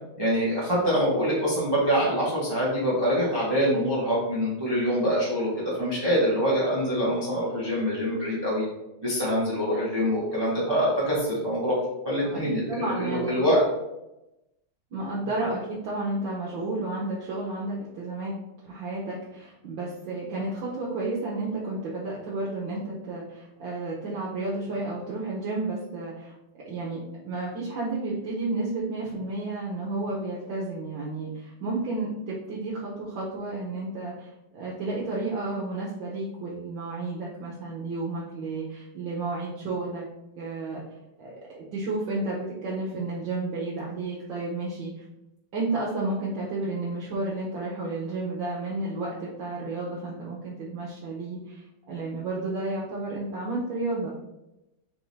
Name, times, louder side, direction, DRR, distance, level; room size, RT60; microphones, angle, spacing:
voice 1, 0.2-8.6 9.0-11.8 12.0-13.6, equal, 20° right, -8 dB, 0.8 m, -25 dB
voice 2, 12.7-13.4 14.9-18.3 18.6-26.3 26.6-40.0 40.4-40.8 41.2-44.9 45.5-54.1, right 2 dB, 70° right, -5 dB, 1.5 m, -32 dB
3.9 x 3.5 x 4.0 m, 0.92 s
omnidirectional pair, 2.3 m